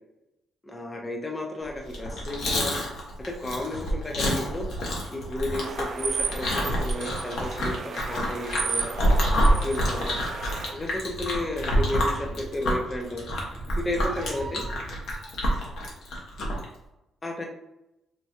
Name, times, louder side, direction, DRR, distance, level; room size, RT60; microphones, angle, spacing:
voice 1, 0.7-2.7 3.3-4.7 5.1-8.9 9.6-10.2 10.7-13.3 13.8-14.6 17.2-17.4, left 1 dB, 20° left, 1 dB, 0.6 m, -32 dB
Chewing mastication, 1.8-16.6, equal, 75° left, 1.1 m, -27 dB
sound 1, 5.6-10.7, right 6 dB, 55° right, 0.4 m, -34 dB
Meow, 8.9-15.6, right 2 dB, 30° right, 0.8 m, -42 dB
4.3 x 2.2 x 2.8 m, 0.90 s
cardioid pair, 90°, 0 cm